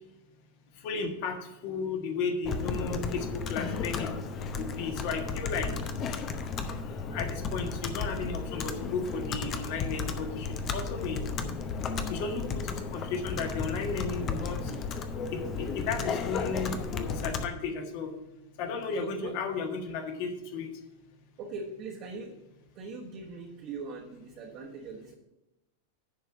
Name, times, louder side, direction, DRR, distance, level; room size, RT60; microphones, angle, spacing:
voice 1, 0.8-1.4 1.6-4.1 4.6-5.7 7.1-10.5 10.7-11.2 12.1-14.6 15.3-16.8 17.1-18.1 18.6-20.7, left 4 dB, 45° left, 5 dB, 1.5 m, -34 dB
Computer keyboard, 2.5-17.5, left 5 dB, 30° left, 0.8 m, -34 dB
voice 2, 19.0-19.3 21.4-22.3 22.7-25.2, right 4 dB, 40° right, -2 dB, 1.3 m, -41 dB
10.5 x 4.6 x 6.7 m, 0.96 s
figure-of-eight pair, 90°, 0 cm